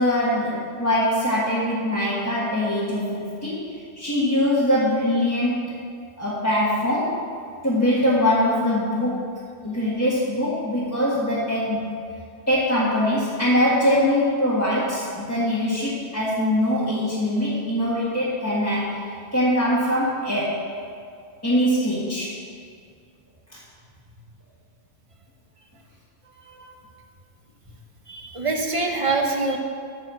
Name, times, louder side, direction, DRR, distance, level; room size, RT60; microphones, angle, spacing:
voice 1, 0.0-5.7 6.2-7.2 7.6-9.3 9.6-11.9 12.5-20.6 21.4-22.3 23.5-23.6, left 1 dB, 15° left, -10 dB, 1.6 m, -22 dB
voice 2, 28.1-29.6, right 3 dB, 30° right, 2 dB, 1.0 m, -25 dB
13.5 x 4.7 x 6.2 m, 2.3 s
omnidirectional pair, 1.1 m